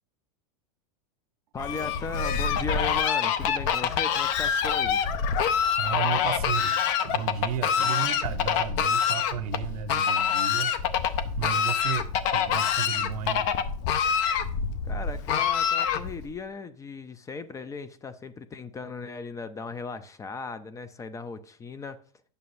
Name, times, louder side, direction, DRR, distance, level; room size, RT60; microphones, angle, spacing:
voice 1, 1.5-5.1 14.8-22.0, left 4 dB, 15° left, 0.5 m, -37 dB
Fowl, 1.6-16.3, left 7 dB, 55° left, 0.7 m, -26 dB
voice 2, 5.6-10.7 11.4-13.5, right 9 dB, 75° right, 0.7 m, -33 dB
9.3 x 6.7 x 2.6 m
hypercardioid pair, 120°, 20 cm